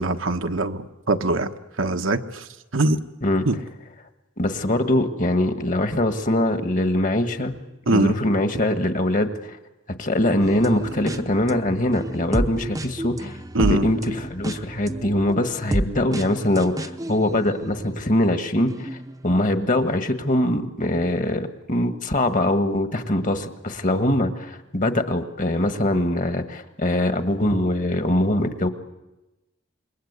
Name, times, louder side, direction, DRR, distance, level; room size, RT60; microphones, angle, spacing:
voice 1, 0.0-1.5 1.8-3.0 3.4-3.6 7.9-8.2 13.5-13.8, right 2 dB, 75° right, 7 dB, 1.3 m, -22 dB
voice 2, 4.4-7.6 7.9-9.3 10.0-19.0 19.2-28.7, left 1 dB, 40° left, 8 dB, 1.6 m, -22 dB
sound 1, 10.4-18.2 18.7-19.2, right 1 dB, 15° right, 0.8 m, -31 dB
27.0 x 22.0 x 8.2 m, 1.0 s
head